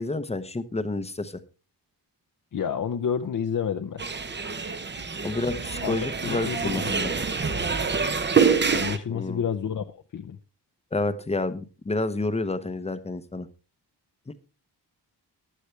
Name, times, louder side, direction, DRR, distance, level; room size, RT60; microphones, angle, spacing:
voice 1, 0.0-1.4 5.2-7.1 9.1-9.4 10.9-13.5 14.3-14.4, left 2 dB, 15° left, 12 dB, 0.8 m, -29 dB
voice 2, 2.5-4.0 5.8-6.0 6.2-7.6 8.7-10.4, left 7 dB, 50° left, 6 dB, 0.7 m, -30 dB
sound 1, 4.0-9.0, right 5 dB, 25° right, 0.8 m, -26 dB
15.0 x 11.0 x 3.3 m, 0.32 s
wide cardioid pair, 160°, 42 cm